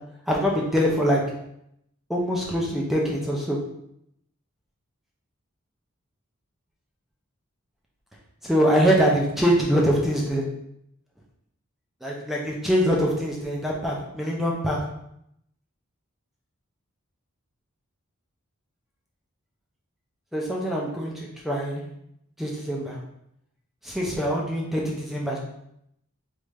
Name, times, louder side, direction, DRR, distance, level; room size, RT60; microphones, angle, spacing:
voice 1, 0.3-1.2 2.1-3.6 8.4-10.4 12.0-14.8 20.3-21.1 21.4-21.9 22.4-23.0 23.9-25.4, equal, ahead, -3 dB, 0.5 m, -23 dB
3.3 x 2.5 x 3.1 m, 0.76 s
head